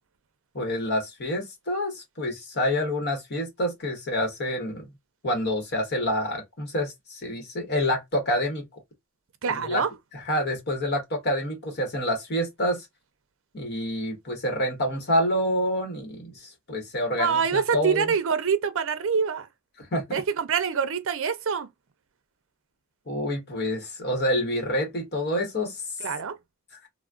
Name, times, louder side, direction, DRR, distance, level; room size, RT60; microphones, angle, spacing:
voice 1, 0.5-4.9 5.2-8.8 9.5-9.8 10.1-12.9 13.5-18.1 19.8-20.2 23.1-26.0 26.7-26.8, left 1 dB, 50° left, 1.0 m, -28 dB
voice 2, 9.4-9.9 17.2-19.5 20.1-21.7 26.0-26.4, right 6 dB, 60° right, 0.5 m, -25 dB
3.4 x 2.1 x 2.4 m
head